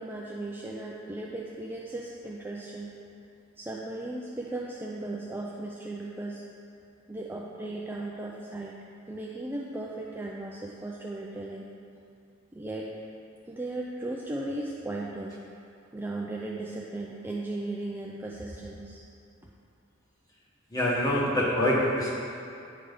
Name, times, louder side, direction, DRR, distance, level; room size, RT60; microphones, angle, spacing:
voice 1, 0.0-2.9 3.6-6.4 7.1-8.8 9.1-11.7 12.5-12.9 13.5-15.4 15.9-19.0, right 2 dB, 10° right, -3 dB, 0.4 m, -36 dB
voice 2, 20.7-22.1, left 1 dB, 20° left, -5 dB, 1.3 m, -25 dB
9.5 x 5.0 x 3.5 m, 2.6 s
head